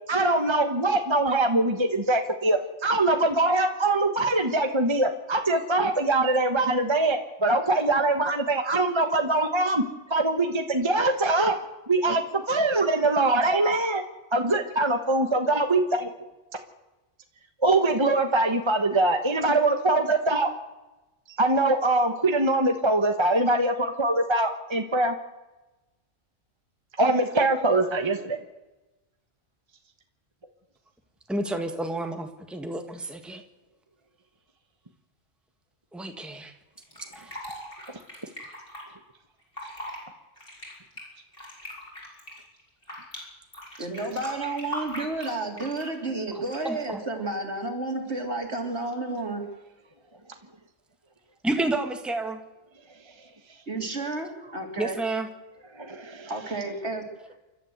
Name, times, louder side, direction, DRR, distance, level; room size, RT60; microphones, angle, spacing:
voice 1, 0.1-9.8 10.1-11.6 11.9-14.0 14.3-16.1 17.6-20.5 21.4-25.1 27.0-28.4 55.7-56.3, right 2 dB, 25° right, 6 dB, 1.3 m, -23 dB
voice 2, 31.3-33.4 35.9-36.5 37.1-37.3 46.3-47.0 51.4-52.4 54.8-55.3, right 2 dB, ahead, 5 dB, 1.7 m, -30 dB
Fill (with liquid), 36.8-38.8 39.4-40.0 40.4-43.2 43.5-46.0 46.5-46.8, left 1 dB, 50° left, 7.3 m, -40 dB
voice 3, 43.8-49.4 53.7-55.0 56.3-57.0, right 2 dB, 65° right, 3 dB, 3.7 m, -31 dB
29.0 x 12.5 x 8.0 m, 1.1 s
omnidirectional pair, 1.2 m